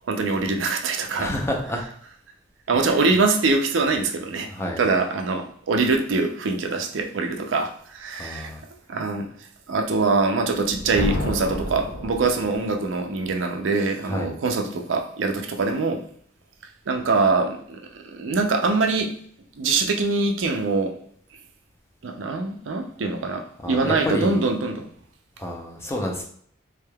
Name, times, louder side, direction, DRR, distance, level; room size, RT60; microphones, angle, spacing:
voice 1, 0.1-1.3 2.7-4.5 4.8-8.5 8.9-9.3 9.7-16.0 16.9-19.1 19.6-21.0 22.0-24.9, right 3 dB, 75° right, 6 dB, 0.5 m, -23 dB
voice 2, 1.2-1.9 2.7-3.0 4.5-4.8 8.1-8.6 14.0-14.3 23.6-24.4 25.4-26.2, left 1 dB, 15° left, 1 dB, 0.5 m, -29 dB
Thunder, 10.6-12.8, left 1 dB, 70° left, 0.6 m, -30 dB
3.6 x 3.4 x 2.2 m, 0.62 s
head